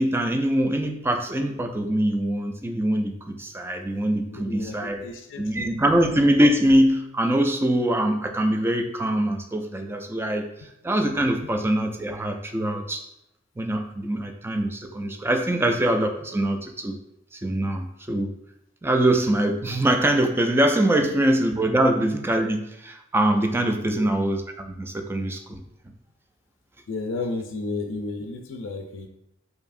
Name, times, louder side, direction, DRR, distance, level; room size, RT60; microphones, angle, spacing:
voice 1, 0.0-5.0 5.4-10.5 10.8-13.1 13.6-17.0 17.3-18.3 18.8-25.6, right 1 dB, 10° right, 5 dB, 0.3 m, -23 dB
voice 2, 4.3-6.0 21.2-21.3 21.8-21.9 23.8-24.2 26.9-29.1, left 3 dB, 75° left, 3 dB, 0.4 m, -33 dB
4.6 x 2.7 x 2.5 m, 0.83 s
head